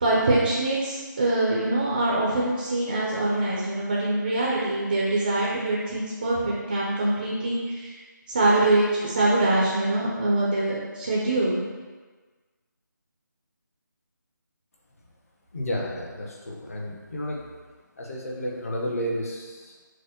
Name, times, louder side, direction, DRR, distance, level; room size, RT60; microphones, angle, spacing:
voice 1, 0.0-8.0 8.3-11.6, right 2 dB, 20° right, -5 dB, 0.4 m, -24 dB
voice 2, 15.5-17.5 18.0-19.8, equal, 45° left, -2 dB, 0.9 m, -32 dB
6.2 x 2.1 x 2.9 m, 1.4 s
figure-of-eight pair, 165°, 11 cm